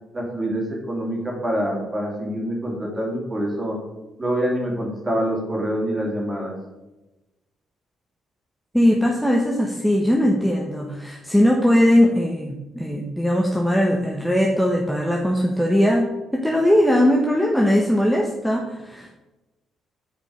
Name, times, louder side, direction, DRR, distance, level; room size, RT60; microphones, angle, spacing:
voice 1, 0.1-3.8 4.2-6.6, equal, 25° right, -1 dB, 2.9 m, -26 dB
voice 2, 8.7-19.1, equal, ahead, 0 dB, 1.1 m, -20 dB
8.3 x 5.1 x 5.1 m, 1.0 s
cardioid pair, 90°, 0 cm